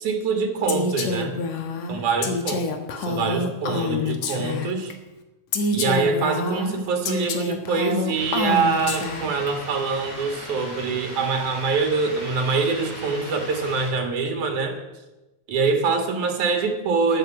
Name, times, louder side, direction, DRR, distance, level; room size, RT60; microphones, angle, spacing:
voice 1, 0.0-1.4 1.9-2.6 3.0-4.9 5.7-14.8 15.5-17.2, right 4 dB, 90° right, 5 dB, 3.5 m, -24 dB
Female speech woman speaking, 0.7-4.9 5.5-9.5, left 3 dB, 65° left, 2.7 m, -27 dB
sound 1, 8.1-13.9, equal, 25° left, 5.6 m, -38 dB
13.5 x 12.5 x 7.8 m, 1.0 s
omnidirectional pair, 3.4 m